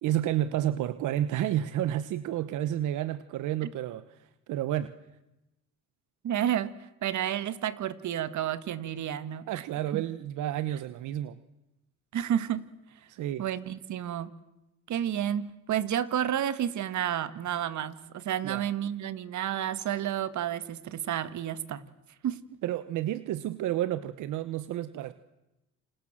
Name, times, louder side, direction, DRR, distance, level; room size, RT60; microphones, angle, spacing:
voice 1, 0.0-4.9 9.5-11.4 13.1-13.4 18.4-18.7 22.6-25.1, right 12 dB, 90° right, 14 dB, 1.2 m, -30 dB
voice 2, 6.2-6.7 7.0-9.6 9.9-10.0 12.1-12.7 13.4-14.3 14.9-21.8 22.2-22.4, right 10 dB, 70° right, 14 dB, 1.9 m, -31 dB
29.0 x 27.0 x 7.5 m, 0.95 s
cardioid pair, 90°, 30 cm